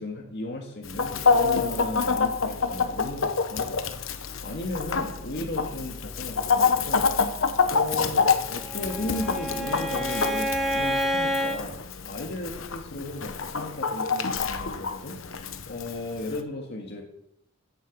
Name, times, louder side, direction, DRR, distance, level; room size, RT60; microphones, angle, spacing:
voice 1, 0.0-4.2 4.4-7.1 7.7-11.8 12.0-15.2 15.7-17.0, left 1 dB, 55° left, 2 dB, 1.9 m, -35 dB
Chicken rooster, 0.9-16.4, left 5 dB, 75° left, 1.0 m, -27 dB
Bowed string instrument, 8.4-11.6, equal, ahead, 1.7 m, -28 dB
15.0 x 10.5 x 5.3 m, 0.80 s
head